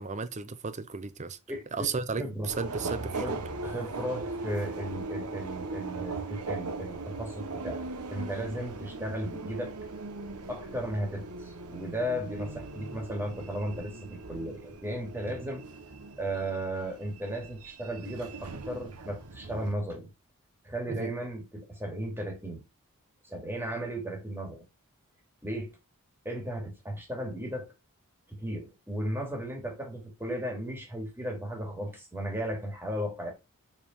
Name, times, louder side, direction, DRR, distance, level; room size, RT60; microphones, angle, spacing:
voice 1, 0.0-1.4 1.7-3.4 15.3-15.4 20.9-21.1, right 4 dB, 35° right, 0.7 m, -34 dB
voice 2, 1.5-1.9 2.2-2.5 3.2-7.8 8.1-9.7 10.5-15.6 16.2-20.1 20.6-22.6 23.2-24.6 25.4-25.7 26.2-27.7 28.3-33.3, right 1 dB, 10° right, 2.6 m, -35 dB
Subway metro underground, 2.5-19.7, right 3 dB, 85° right, 1.3 m, -39 dB
5.5 x 4.6 x 5.5 m
head